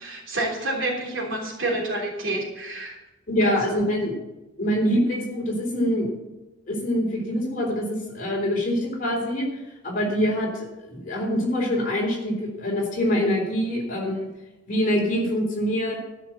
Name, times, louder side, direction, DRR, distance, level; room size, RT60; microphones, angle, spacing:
voice 1, 0.0-3.0 3.4-3.5, right 2 dB, 65° right, -2 dB, 3.4 m, -28 dB
voice 2, 3.3-4.2 4.6-6.1 6.7-14.3 14.7-16.0, equal, 40° left, -2 dB, 3.6 m, -25 dB
12.5 x 5.8 x 7.5 m, 1.0 s
head